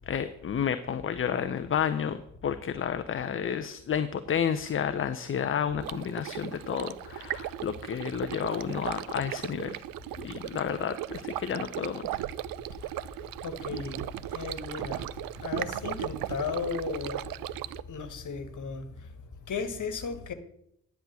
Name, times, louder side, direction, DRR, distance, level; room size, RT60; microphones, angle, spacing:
voice 1, 0.1-9.8 10.2-12.2, left 8 dB, 30° left, 0.7 m, -31 dB
Stream, 5.8-17.8, right 14 dB, 55° right, 0.5 m, -37 dB
voice 2, 13.4-15.1 15.4-17.3 17.9-18.9 19.5-20.3, left 5 dB, 45° left, 1.6 m, -35 dB
10.5 x 6.3 x 6.1 m
figure-of-eight pair, 40°, 42 cm